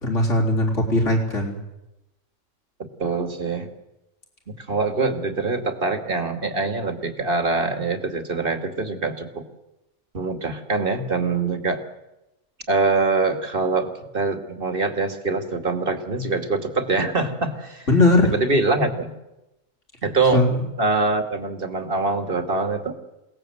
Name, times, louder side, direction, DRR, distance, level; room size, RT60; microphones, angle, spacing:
voice 1, 0.0-1.6 17.9-18.3 20.3-20.6, left 2 dB, 65° left, 0 dB, 4.3 m, -19 dB
voice 2, 3.0-3.7 4.6-9.5 10.1-11.8 12.7-17.9 18.2-19.1 20.0-20.4 20.8-22.9, right 3 dB, 45° right, 6 dB, 2.5 m, -24 dB
28.0 x 18.5 x 7.9 m, 0.97 s
omnidirectional pair, 1.4 m